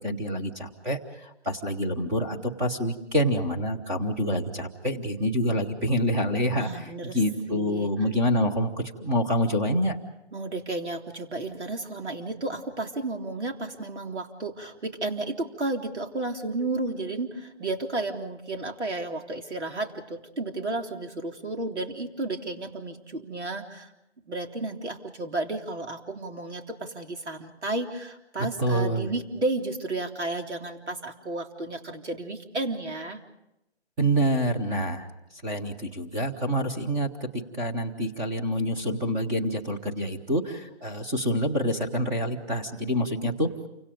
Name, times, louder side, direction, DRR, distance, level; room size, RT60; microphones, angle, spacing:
voice 1, 0.0-10.0 28.6-29.1 34.0-35.1 35.3-37.3 37.6-43.5, equal, 10° right, 3 dB, 1.0 m, -27 dB
voice 2, 6.5-7.2 7.5-7.9 10.3-23.9 24.3-33.2, right 2 dB, 75° right, 3 dB, 3.6 m, -32 dB
29.0 x 25.5 x 5.1 m, 0.86 s
figure-of-eight pair, 155°, 34 cm